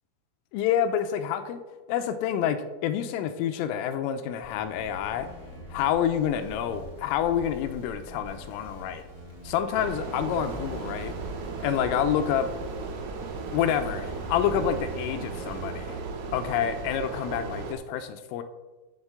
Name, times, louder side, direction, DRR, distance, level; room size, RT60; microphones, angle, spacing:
voice 1, 0.5-1.6 1.9-5.3 5.7-9.0 9.4-11.1 11.6-12.5 13.5-16.0 16.3-18.4, left 9 dB, 85° left, 9 dB, 3.2 m, -28 dB
sound 1, 4.4-15.7, right 1 dB, 5° right, 2.8 m, -43 dB
sound 2, 9.7-17.8, right 4 dB, 90° right, 3.9 m, -36 dB
8.2 x 7.0 x 7.9 m, 1.2 s
omnidirectional pair, 5.9 m